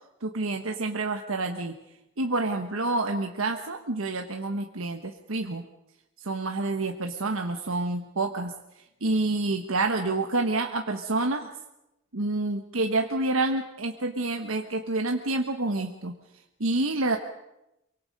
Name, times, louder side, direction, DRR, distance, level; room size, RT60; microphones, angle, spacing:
voice 1, 0.2-1.7 2.2-5.6 6.2-8.5 9.0-11.5 12.1-16.2 16.6-17.2, right 2 dB, 85° right, 4 dB, 1.3 m, -28 dB
24.5 x 24.0 x 5.4 m, 0.90 s
head